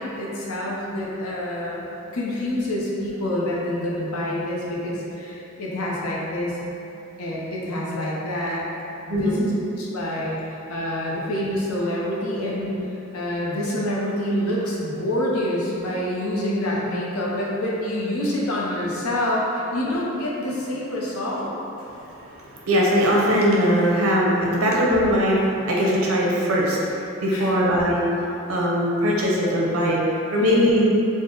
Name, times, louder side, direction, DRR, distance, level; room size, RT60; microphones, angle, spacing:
voice 1, 0.0-1.8 2.1-6.7 7.2-8.6 9.1-12.8 13.1-21.5 27.3-27.7 30.4-30.8, left 1 dB, 85° left, -4 dB, 0.7 m, -27 dB
voice 2, 22.1-26.8 27.2-28.0 28.5-30.0 30.3-30.9, equal, 80° right, -4 dB, 0.7 m, -20 dB
3.6 x 2.1 x 3.8 m, 2.9 s
head